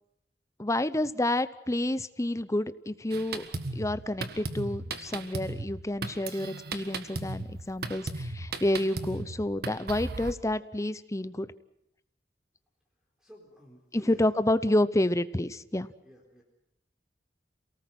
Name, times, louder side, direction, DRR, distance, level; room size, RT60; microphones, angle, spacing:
voice 1, 0.6-3.4 3.7-11.5 13.9-15.9, left 1 dB, 20° left, 14 dB, 0.8 m, -29 dB
Drum kit, 3.1-10.3, right 2 dB, 60° right, 1.7 m, -37 dB
voice 2, 13.2-14.3 16.0-16.4, equal, 5° right, 0 dB, 4.0 m, -52 dB
28.0 x 18.5 x 7.8 m, 0.79 s
head